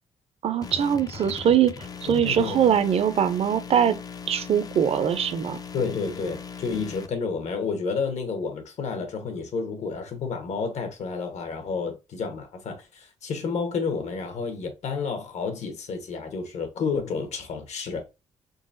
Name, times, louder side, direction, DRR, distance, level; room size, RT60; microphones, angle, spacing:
voice 1, 0.4-4.0 4.3-5.6, right 8 dB, 55° right, 0.5 m, -22 dB
sound 1, 0.6-7.1, left 6 dB, 30° left, 0.4 m, -39 dB
voice 2, 2.1-2.6 5.7-18.0, left 5 dB, 70° left, 1.1 m, -30 dB
3.8 x 3.4 x 2.5 m
wide cardioid pair, 150°, 12 cm